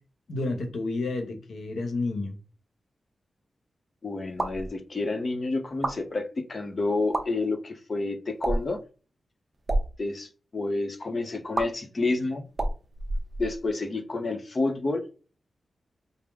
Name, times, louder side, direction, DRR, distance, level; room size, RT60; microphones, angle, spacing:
voice 1, 0.3-2.4, left 2 dB, 80° left, 1.0 m, -30 dB
voice 2, 4.0-8.8 10.0-12.4 13.4-15.0, left 3 dB, 40° left, 0.7 m, -29 dB
sound 1, 4.3-4.7 5.7-6.0 7.0-7.2 8.4-8.8 9.5-9.9 11.5-11.7 12.5-13.7, right 1 dB, 25° right, 0.7 m, -28 dB
5.1 x 2.0 x 3.5 m
wide cardioid pair, 135°, 0 cm